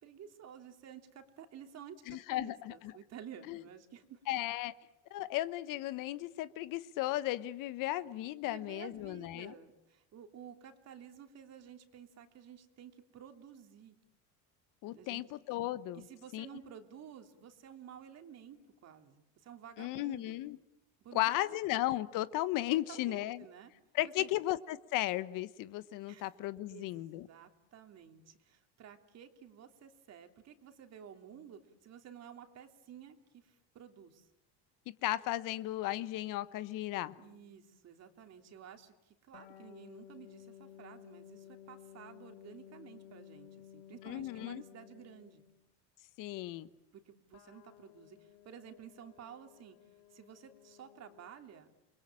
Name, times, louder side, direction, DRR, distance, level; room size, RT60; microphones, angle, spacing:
voice 1, 0.0-4.2 8.4-14.0 14.8-15.2 15.9-20.4 21.0-21.6 22.7-23.7 24.0-24.3 26.1-26.3 26.7-34.3 37.2-45.4 46.9-49.8 50.1-51.7, right 8 dB, 45° right, 6 dB, 3.1 m, -53 dB
voice 2, 2.1-2.9 3.5-3.6 4.3-4.7 5.1-9.5 14.8-16.0 16.3-16.5 19.8-20.6 21.1-23.4 23.9-27.3 35.0-37.1 44.0-44.6 46.2-46.7, left 15 dB, 60° left, 15 dB, 1.2 m, -35 dB
sound 1, 37.1-37.7 39.3-45.7 47.3-51.3, left 11 dB, 85° left, 2.8 m, -56 dB
29.0 x 22.0 x 8.9 m, 0.88 s
supercardioid pair, 115°, 36 cm